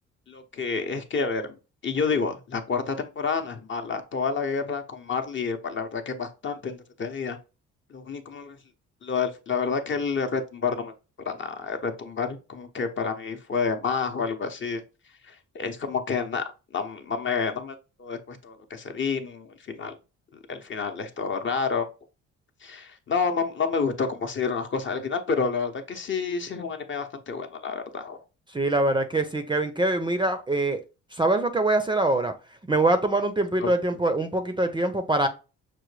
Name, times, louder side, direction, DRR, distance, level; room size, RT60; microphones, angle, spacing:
voice 1, 0.3-1.6 1.8-7.4 7.9-8.6 9.0-10.9 11.3-14.8 15.3-16.4 16.7-20.0 20.5-21.9 22.6-28.2 33.6-33.7, left 5 dB, 40° left, 0.7 m, -29 dB
voice 2, 28.5-30.8 31.1-32.3 32.7-35.3, right 2 dB, 15° right, 0.5 m, -24 dB
6.0 x 2.2 x 3.2 m
cardioid pair, 90°, 30 cm